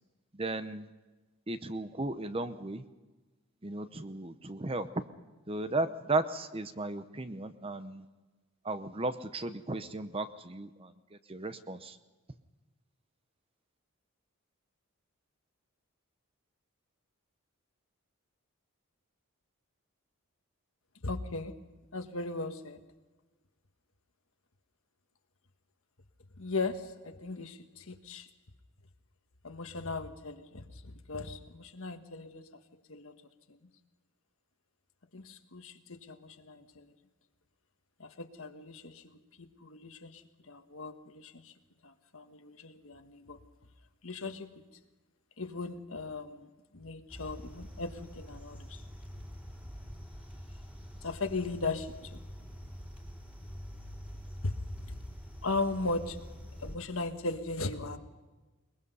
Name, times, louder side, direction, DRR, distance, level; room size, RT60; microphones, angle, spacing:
voice 1, 0.3-0.9 1.5-2.9 3.6-5.0 5.5-8.1 8.6-12.0, right 2 dB, 25° right, 11 dB, 0.8 m, -35 dB
voice 2, 21.0-21.5 21.9-22.8 26.4-28.3 29.4-32.5 32.9-33.2 33.5-33.6 35.1-36.9 38.0-41.5 41.8-43.4 44.0-44.6 45.4-48.8 51.0-52.2 54.4-54.5 54.9-55.0 55.4-56.2 56.6-58.0, left 3 dB, 70° left, 7 dB, 1.4 m, -38 dB
sound 1, 47.1-56.8, equal, 5° right, 2.9 m, -46 dB
22.0 x 21.5 x 5.5 m, 1.2 s
head